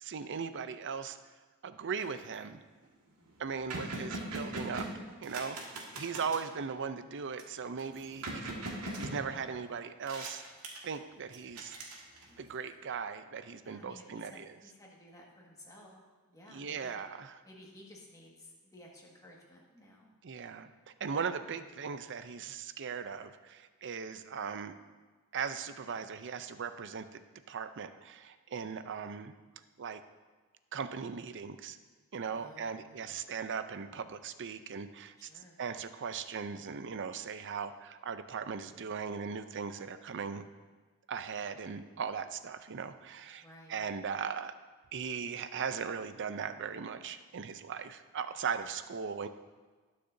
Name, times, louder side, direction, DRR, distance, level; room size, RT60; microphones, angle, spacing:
voice 1, 0.0-1.2 1.6-2.6 3.4-4.9 5.2-5.6 5.9-10.4 10.8-11.7 12.4-14.6 16.5-17.4 20.2-20.7 21.0-24.7 25.3-27.2 27.5-29.3 29.8-30.0 30.7-31.8 32.1-35.3 35.6-40.4 41.1-44.5 44.9-49.3, right 6 dB, 55° right, 11 dB, 0.5 m, -38 dB
sound 1, 2.0-2.3 2.8-2.9 3.1-6.5 7.4-9.7 10.0-11.0 11.3-12.5, right 2 dB, 85° right, 1.8 m, -41 dB
voice 2, 12.1-12.5 13.6-17.0 17.4-20.1 32.3-33.2 35.3-35.6 43.4-43.8, left 1 dB, 15° left, -3 dB, 1.8 m, -55 dB
19.5 x 6.7 x 2.7 m, 1.4 s
head